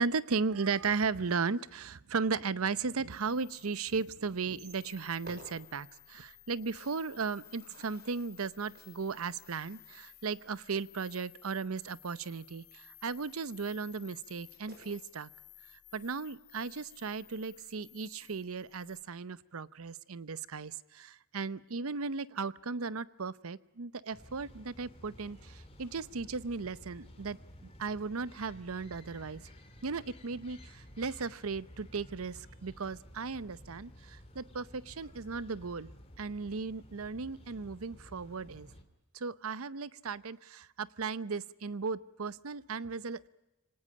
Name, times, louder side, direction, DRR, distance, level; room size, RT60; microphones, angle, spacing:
voice 1, 0.0-15.3 15.9-29.4 29.8-35.9 36.2-38.7 39.1-43.3, right 4 dB, 75° right, 17 dB, 0.7 m, -36 dB
sound 1, 3.1-19.0, left 16 dB, 85° left, 2.1 m, -56 dB
sound 2, 4.5-15.1, right 2 dB, 45° right, 5.8 m, -60 dB
sound 3, 24.1-38.8, equal, 25° left, 2.6 m, -54 dB
25.0 x 18.5 x 8.6 m, 0.99 s
head